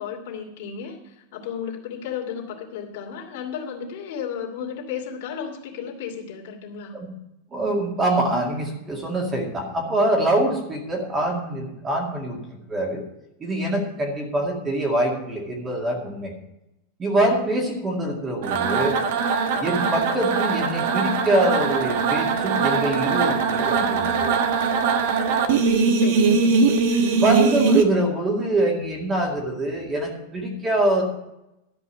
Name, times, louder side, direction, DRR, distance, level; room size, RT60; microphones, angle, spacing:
voice 1, 0.0-7.0 25.9-27.2, left 7 dB, 60° left, 0 dB, 2.6 m, -34 dB
voice 2, 7.5-13.0 13.4-16.3 17.0-19.0 19.6-24.3 27.2-31.0, right 1 dB, 15° right, 0 dB, 2.1 m, -24 dB
sound 1, 18.4-27.8, right 5 dB, 60° right, 1.3 m, -21 dB
12.0 x 5.4 x 8.6 m, 0.88 s
supercardioid pair, 165°, 0 cm